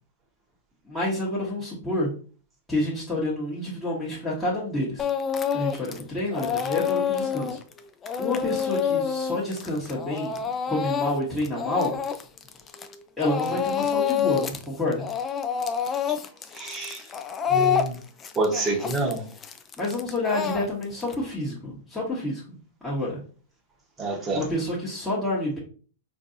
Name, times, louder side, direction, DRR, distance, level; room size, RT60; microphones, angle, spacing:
voice 1, 0.8-2.1 2.7-5.1 5.5-7.6 8.2-10.4 10.7-12.0 13.2-15.0 19.8-22.4 22.8-23.2 24.3-25.6, left 1 dB, 5° left, 1.2 m, -28 dB
Speech / Crying sobbing, 5.0-6.0 6.3-13.0 13.2-14.6 14.9-21.1, left 8 dB, 25° left, 0.4 m, -27 dB
voice 2, 16.5-17.0 17.5-17.9 18.4-19.2 24.0-24.4, right 2 dB, 20° right, 1.2 m, -27 dB
4.5 x 2.6 x 2.6 m
hypercardioid pair, 110°, 0 cm